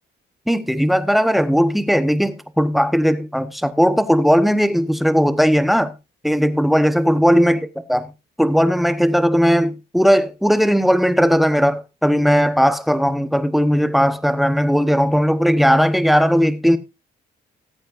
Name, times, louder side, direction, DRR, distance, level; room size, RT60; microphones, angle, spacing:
voice 1, 0.5-5.9 6.2-7.6 7.9-8.0 8.4-16.8, equal, ahead, 1.1 m, -17 dB
19.0 x 8.4 x 2.6 m
cardioid pair, 90°, 20 cm